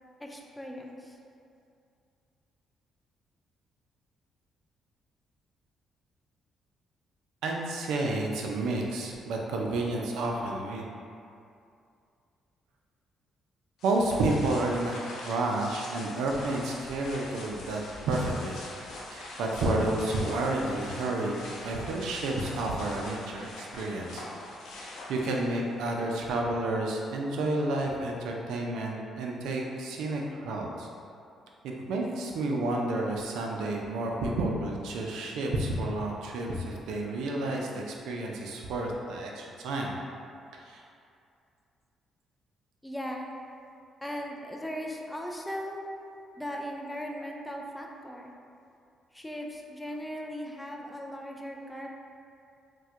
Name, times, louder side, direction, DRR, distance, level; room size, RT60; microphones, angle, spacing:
voice 1, 0.2-1.2 42.8-43.3 44.0-45.8 46.4-48.3 49.1-51.9, equal, 10° left, 0 dB, 0.4 m, -38 dB
voice 2, 7.4-10.8 13.8-17.8 18.1-18.6 19.1-24.2 24.8-30.9 31.6-40.0 40.5-40.8, right 2 dB, 85° right, 0 dB, 0.4 m, -30 dB
sound 1, 13.8-25.7, left 1 dB, 85° left, 0.5 m, -43 dB
4.2 x 2.2 x 2.4 m, 2.5 s
cardioid pair, 90°, 0 cm